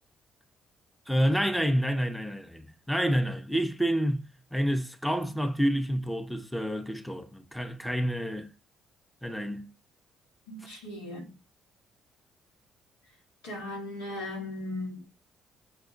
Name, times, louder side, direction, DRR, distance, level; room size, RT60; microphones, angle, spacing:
voice 1, 1.1-8.5 9.2-9.7, equal, ahead, 0.7 m, -28 dB
voice 2, 10.5-11.3 13.4-15.0, left 1 dB, 80° left, 1.5 m, -37 dB
5.0 x 2.3 x 4.0 m
hypercardioid pair, 45°, 0 cm